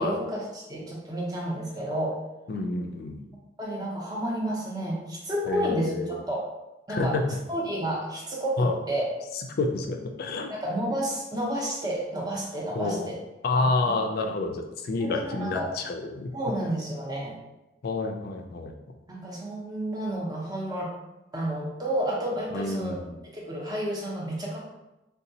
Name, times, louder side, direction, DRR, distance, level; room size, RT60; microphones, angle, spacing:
voice 1, 0.0-2.2 3.6-6.4 6.9-7.2 7.5-9.0 10.5-13.2 13.6-14.3 15.0-15.7 16.3-17.3 19.1-20.9 21.3-23.0 23.2-24.7, right 1 dB, 20° right, -3 dB, 0.6 m, -31 dB
voice 2, 2.5-3.3 5.5-6.2 6.9-7.2 8.6-8.8 9.6-10.5 12.7-13.1 13.4-16.3 17.8-18.7 22.5-23.2, left 3 dB, 50° left, 4 dB, 0.4 m, -28 dB
3.9 x 2.3 x 2.7 m, 0.98 s
head